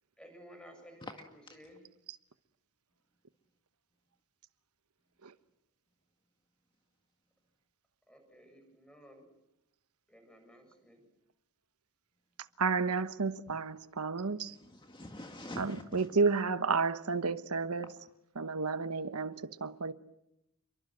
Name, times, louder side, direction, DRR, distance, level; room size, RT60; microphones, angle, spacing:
voice 1, 0.2-1.9 8.1-9.3 10.1-11.0, equal, 5° left, 7.4 m, -55 dB
voice 2, 12.6-14.5 15.6-17.9 18.4-19.9, right 4 dB, 80° right, 1.1 m, -31 dB
voice 3, 14.4-16.1, left 1 dB, 20° left, 1.8 m, -46 dB
29.0 x 23.5 x 7.8 m
head